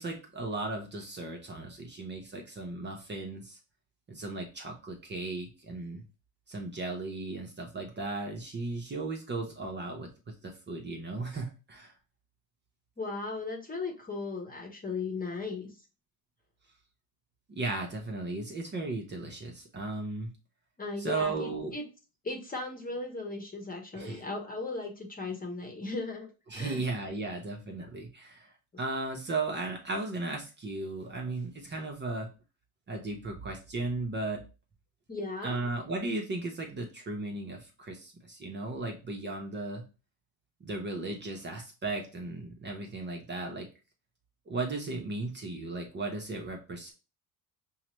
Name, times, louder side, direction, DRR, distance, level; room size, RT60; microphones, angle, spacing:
voice 1, 0.0-3.6 4.1-6.0 6.5-11.9 17.5-20.3 21.0-21.8 23.9-24.2 26.5-32.3 32.9-34.4 35.4-39.8 40.6-43.7 44.5-46.9, right 3 dB, 25° right, 2 dB, 0.7 m, -36 dB
voice 2, 13.0-15.7 20.8-21.8 22.2-26.8 35.1-35.6, left 3 dB, 20° left, 3 dB, 1.0 m, -37 dB
5.5 x 2.1 x 3.0 m, 0.32 s
supercardioid pair, 100°, 39 cm